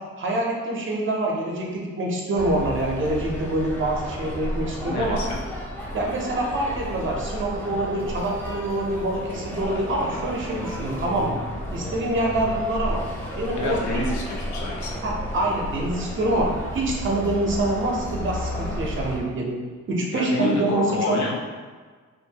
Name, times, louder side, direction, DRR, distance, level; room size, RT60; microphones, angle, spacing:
voice 1, 0.0-5.2 5.9-11.4 11.7-13.0 13.4-14.0 15.0-19.6 19.9-21.2, right 1 dB, 40° right, -1 dB, 0.7 m, -26 dB
sound 1, 2.3-19.2, equal, 5° left, 0.5 m, -32 dB
voice 2, 4.9-5.4 13.6-15.0 20.1-21.4, left 3 dB, 70° left, -2 dB, 0.7 m, -28 dB
2.6 x 2.5 x 2.8 m, 1.5 s
cardioid pair, 90°, 30 cm